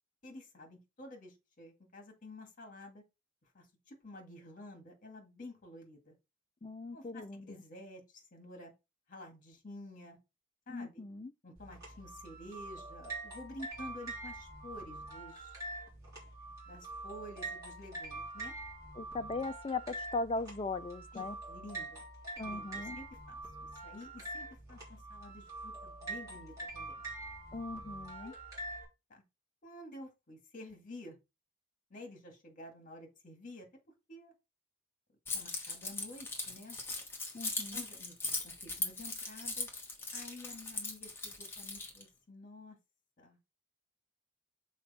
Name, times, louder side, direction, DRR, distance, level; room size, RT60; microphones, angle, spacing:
voice 1, 0.2-3.0 3.5-6.1 6.9-8.7 9.1-10.2 10.7-11.1 11.4-15.6 16.7-18.5 21.1-22.1 22.4-23.4 23.8-27.0 28.2-28.4 29.1-29.2 29.6-31.2 31.9-33.7 34.1-34.3 35.3-36.8 37.7-39.7 40.1-42.8 43.2-43.4, left 1 dB, 45° left, 1.9 m, -50 dB
voice 2, 6.6-7.6 10.7-11.3 19.0-21.4 22.4-23.0 27.5-28.3 37.3-37.8, left 3 dB, 25° left, 0.4 m, -39 dB
sound 1, 11.6-28.8, right 2 dB, 20° right, 3.6 m, -45 dB
Keys jangling, 35.3-42.0, left 3 dB, 10° left, 1.4 m, -39 dB
6.4 x 4.3 x 4.2 m
head